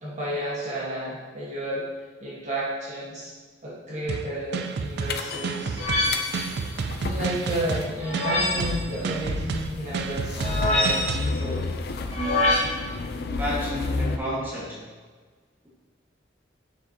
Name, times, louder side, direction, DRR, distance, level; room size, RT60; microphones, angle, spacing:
voice 1, 0.0-1.8 2.2-3.3 3.6-5.8 7.0-11.7, equal, 40° right, -7 dB, 1.5 m, -32 dB
sound 1, 4.1-11.3, right 5 dB, 65° right, 0.4 m, -31 dB
sound 2, 5.1-14.2, left 3 dB, 60° left, 0.5 m, -32 dB
sound 3, 5.8-6.6 8.0-8.8 10.4-11.3 12.1-12.6, left 1 dB, 40° left, 1.3 m, -25 dB
voice 2, 13.2-14.8, left 1 dB, 10° right, -8 dB, 1.7 m, -31 dB
6.8 x 6.1 x 2.8 m, 1.5 s
head